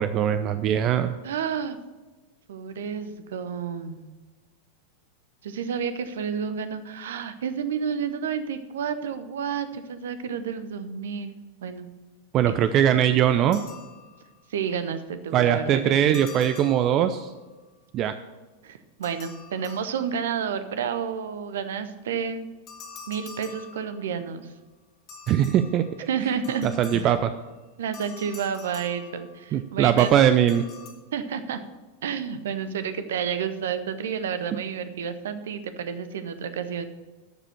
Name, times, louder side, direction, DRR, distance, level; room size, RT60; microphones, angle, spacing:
voice 1, 0.0-1.1 12.3-13.6 15.3-17.3 17.9-18.1 25.3-26.1 26.6-27.3 29.5-30.6, right 10 dB, 35° right, 10 dB, 0.4 m, -21 dB
voice 2, 1.2-1.8 2.5-4.0 5.4-11.9 12.5-12.6 14.5-16.3 18.6-22.5 23.1-24.5 26.1-27.1 27.8-30.1 31.1-31.6 32.0-36.9, right 7 dB, 60° right, 11 dB, 0.8 m, -30 dB
sound 1, 13.5-14.5 16.1-17.4 19.0-20.4 22.7-24.3 25.1-27.4 27.9-29.6 30.0-30.9, left 5 dB, 35° left, 2.3 m, -46 dB
13.0 x 5.0 x 7.6 m, 1.2 s
figure-of-eight pair, 90°, 0 cm